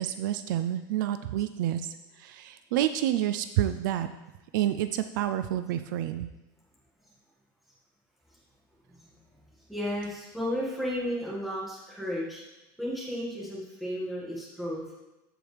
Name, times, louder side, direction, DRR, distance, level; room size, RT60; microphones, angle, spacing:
voice 1, 0.0-4.1 4.5-6.3, right 12 dB, 65° right, 10 dB, 0.4 m, -29 dB
voice 2, 9.7-12.4 12.8-14.8, equal, ahead, -7 dB, 1.9 m, -33 dB
13.5 x 4.7 x 3.4 m, 1.0 s
supercardioid pair, 165°, 11 cm